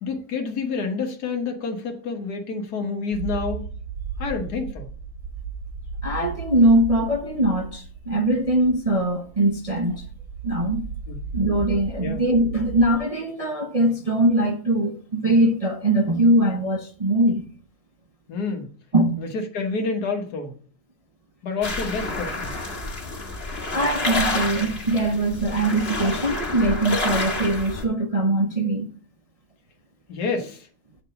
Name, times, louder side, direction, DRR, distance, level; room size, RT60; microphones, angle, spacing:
voice 1, 0.0-3.7 4.2-4.9 11.1-11.2 12.0-12.2 18.3-18.7 19.2-20.6 21.4-22.6 30.1-30.7, left 4 dB, 80° left, 1.8 m, -28 dB
sound 1, 3.1-13.0, right 5 dB, 65° right, 1.3 m, -35 dB
voice 2, 6.0-10.1 10.4-10.9 11.3-17.4 18.9-19.2 23.7-28.9, right 1 dB, 30° right, 0.8 m, -21 dB
sound 2, 21.6-27.8, left 2 dB, 40° left, 1.8 m, -29 dB
8.7 x 3.9 x 6.8 m
omnidirectional pair, 1.7 m